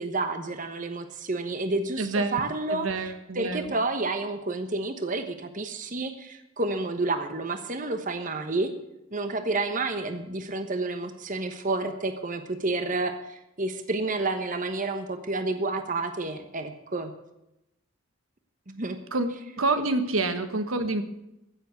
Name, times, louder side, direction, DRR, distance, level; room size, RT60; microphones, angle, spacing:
voice 1, 0.0-8.7 9.1-17.1 18.7-19.0, right 2 dB, 40° right, 7 dB, 1.1 m, -30 dB
voice 2, 2.0-2.4 2.7-3.7 19.1-19.3 19.6-21.0, right 2 dB, 80° right, 9 dB, 1.3 m, -27 dB
15.5 x 7.5 x 8.3 m, 0.87 s
head